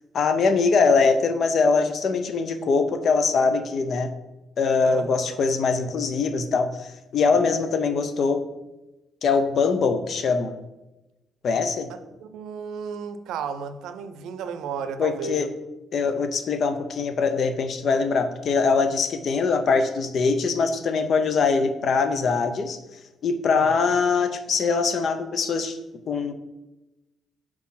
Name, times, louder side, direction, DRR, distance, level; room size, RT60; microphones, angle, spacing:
voice 1, 0.1-4.1 4.6-8.4 9.2-10.5 11.4-11.9 15.0-15.5 15.9-22.8 23.2-25.8 26.1-26.3, left 4 dB, 60° left, 0.6 m, -22 dB
voice 2, 4.8-5.4 7.3-7.6 12.2-15.5 23.5-24.0, right 6 dB, 85° right, 0.5 m, -34 dB
4.5 x 4.2 x 5.7 m
cardioid pair, 90°, 0 cm